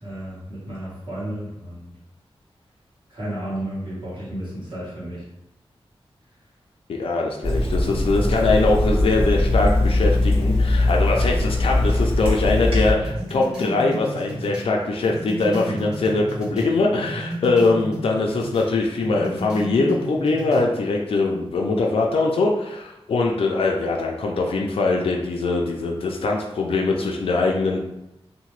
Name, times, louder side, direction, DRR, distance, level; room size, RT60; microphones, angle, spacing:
voice 1, 0.0-1.9 3.1-5.2 15.7-15.9, right 1 dB, 50° right, -7 dB, 1.3 m, -32 dB
voice 2, 6.9-27.8, left 3 dB, 65° left, 0 dB, 0.4 m, -22 dB
Water tap faucet / Sink (filling or washing), 7.4-12.9, left 1 dB, 65° right, 1.5 m, -20 dB
sound 1, 13.0-16.7 17.1-18.7 19.0-20.7, right 1 dB, 5° right, 0.8 m, -33 dB
2.8 x 2.1 x 3.0 m, 0.89 s
wide cardioid pair, 110°, 10 cm